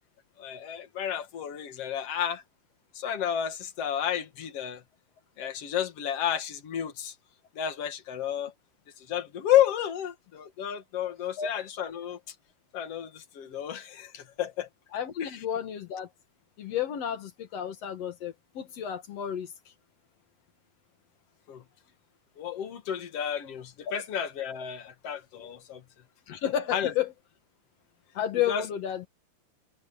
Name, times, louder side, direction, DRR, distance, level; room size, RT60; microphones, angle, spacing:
voice 1, 0.4-2.4 3.0-4.8 5.4-7.1 7.6-8.5 9.1-12.2 12.7-14.7 15.2-15.3 21.5-21.6 22.4-25.8 26.7-26.9 28.5-28.6, left 10 dB, 55° left, 1.7 m, -31 dB
voice 2, 14.9-16.1 16.6-19.5 26.3-27.1 28.1-29.1, left 9 dB, 75° left, 1.5 m, -31 dB
omnidirectional pair, 5.3 m